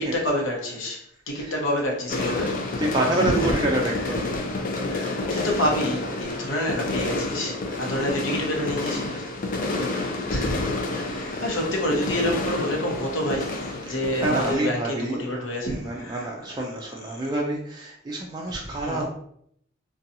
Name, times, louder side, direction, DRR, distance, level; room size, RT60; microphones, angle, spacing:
voice 1, 0.0-2.6 3.4-3.5 3.9-4.1 4.9-9.0 9.7-16.3 17.1-17.2 18.5-19.0, left 1 dB, 80° left, -1 dB, 0.8 m, -28 dB
sound 1, 2.1-14.5, left 2 dB, 45° left, 0.4 m, -29 dB
voice 2, 2.8-4.6 4.9-5.3 7.7-7.8 8.8-9.4 9.6-10.2 11.3-11.4 13.9-15.4 15.6-19.1, right 2 dB, 20° right, -2 dB, 0.3 m, -29 dB
2.6 x 2.3 x 2.6 m, 0.68 s
head